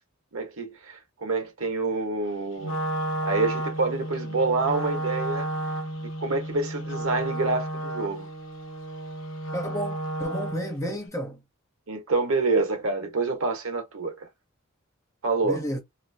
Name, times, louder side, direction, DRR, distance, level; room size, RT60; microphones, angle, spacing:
voice 1, 0.3-2.8 3.2-5.5 6.0-8.3 11.9-14.3 15.2-15.6, right 3 dB, 85° right, 1.2 m, -27 dB
Wind instrument woodwind instrument, 2.6-10.8, right 1 dB, 65° left, 0.7 m, -32 dB
voice 2, 9.5-11.4 15.4-15.8, equal, 15° left, 0.8 m, -31 dB
2.9 x 2.8 x 2.6 m
head